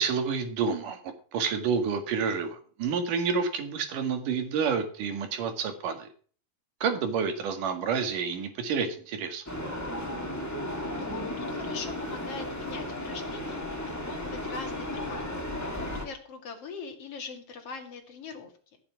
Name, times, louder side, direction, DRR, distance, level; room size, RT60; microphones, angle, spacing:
voice 1, 0.0-6.1 6.8-9.4, right 6 dB, 60° right, 7 dB, 3.3 m, -29 dB
sound 1, 9.5-16.1, left 1 dB, 10° left, 0.7 m, -34 dB
voice 2, 10.8-13.7 14.0-15.4 15.7-18.8, left 5 dB, 45° left, 3 dB, 2.9 m, -42 dB
15.0 x 7.4 x 5.9 m, 0.43 s
omnidirectional pair, 4.4 m